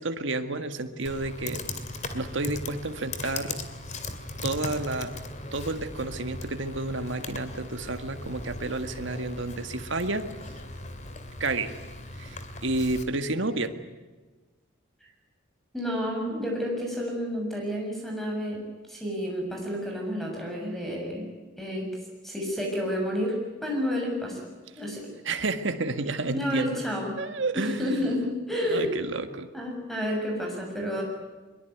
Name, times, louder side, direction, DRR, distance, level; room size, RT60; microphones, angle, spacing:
voice 1, 0.0-1.6 2.1-3.6 4.4-5.1 5.5-10.3 11.4-11.7 12.2-13.8 25.2-26.8 27.2-28.1 28.7-29.5, right 2 dB, 70° right, 8 dB, 1.8 m, -30 dB
Computer keyboard, 1.1-13.0, left 2 dB, 35° left, 2.5 m, -38 dB
voice 2, 15.7-18.6 18.9-21.3 21.6-21.9 22.2-24.5 24.8-25.1 26.3-27.1 27.5-29.0 29.5-31.0, equal, ahead, 0 dB, 6.9 m, -30 dB
23.5 x 22.0 x 9.4 m, 1.3 s
head